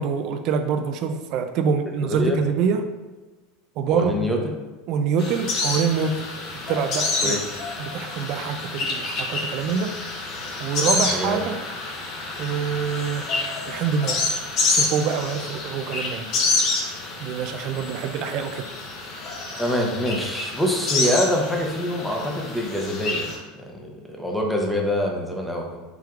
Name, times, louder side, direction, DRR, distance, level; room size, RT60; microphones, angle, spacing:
voice 1, 0.0-2.9 3.8-4.2 4.9-6.2 6.7-7.4 7.8-10.0 10.6-11.6 12.4-13.3 13.7-14.2 14.7-16.3 17.2-18.7, right 6 dB, 50° right, 7 dB, 0.3 m, -25 dB
voice 2, 2.0-2.4 3.9-4.4 7.2-7.4 11.1-11.4 19.6-23.3 23.6-25.8, equal, ahead, -1 dB, 0.7 m, -25 dB
sound 1, 5.2-23.4, left 3 dB, 45° left, 0.8 m, -28 dB
4.5 x 3.6 x 2.4 m, 1.2 s
supercardioid pair, 135°, 0 cm